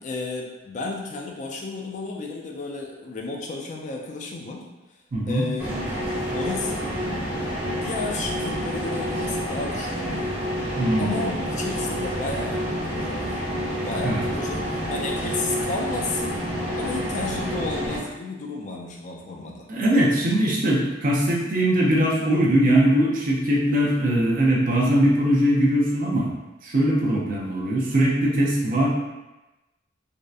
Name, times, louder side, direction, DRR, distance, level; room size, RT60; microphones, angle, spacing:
voice 1, 0.0-4.7 5.3-5.7 6.3-7.0 7.8-10.4 11.0-13.4 13.8-16.4 16.7-19.7, left 3 dB, 40° left, -1 dB, 0.4 m, -32 dB
voice 2, 5.1-5.5 10.8-11.2 14.0-14.2 19.7-26.3 26.6-28.9, right 1 dB, 45° right, -3 dB, 0.5 m, -21 dB
sound 1, 5.6-18.0, equal, 10° right, 0.7 m, -28 dB
2.6 x 2.1 x 2.3 m, 1.0 s
head